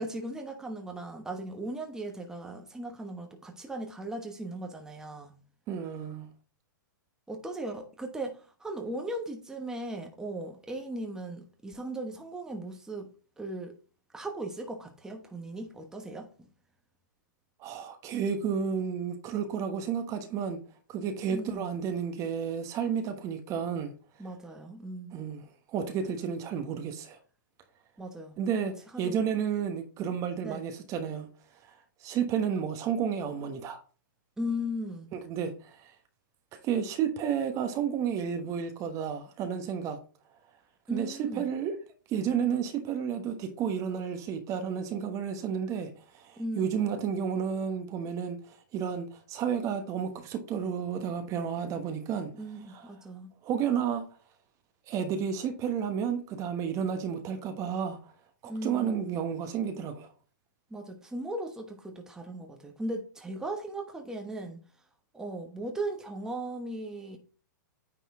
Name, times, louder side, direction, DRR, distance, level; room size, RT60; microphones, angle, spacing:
voice 1, 0.0-5.3 7.3-13.1 13.4-13.8 14.1-16.5 21.3-21.6 24.2-25.1 28.0-29.2 30.4-30.6 34.4-35.1 40.9-41.5 46.4-46.8 52.4-53.3 58.4-59.1 60.7-64.6 65.1-67.2, right 1 dB, 5° right, 1.1 m, -37 dB
voice 2, 5.7-6.3 17.6-20.6 20.9-23.9 25.1-27.2 28.4-31.3 32.0-33.8 35.1-35.9 36.6-40.0 40.9-41.7 42.1-52.3 52.7-52.8 53.4-54.0 54.9-58.1 58.4-60.1, right 7 dB, 30° right, 1.2 m, -31 dB
9.3 x 4.2 x 3.7 m
hypercardioid pair, 130°, 11 cm